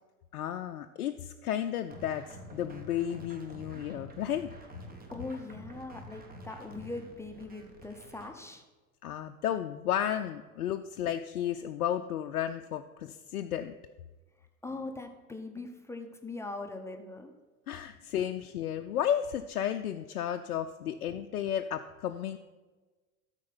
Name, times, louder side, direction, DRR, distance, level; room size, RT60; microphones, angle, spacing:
voice 1, 0.3-4.5 9.0-13.7 17.7-22.4, left 10 dB, 75° left, 7 dB, 0.5 m, -33 dB
sound 1, 1.9-8.3, right 1 dB, 20° right, 1.5 m, -48 dB
voice 2, 5.1-8.6 14.6-17.3, left 3 dB, 5° left, 4 dB, 0.9 m, -41 dB
13.0 x 4.4 x 5.7 m, 1.3 s
figure-of-eight pair, 80°, 44 cm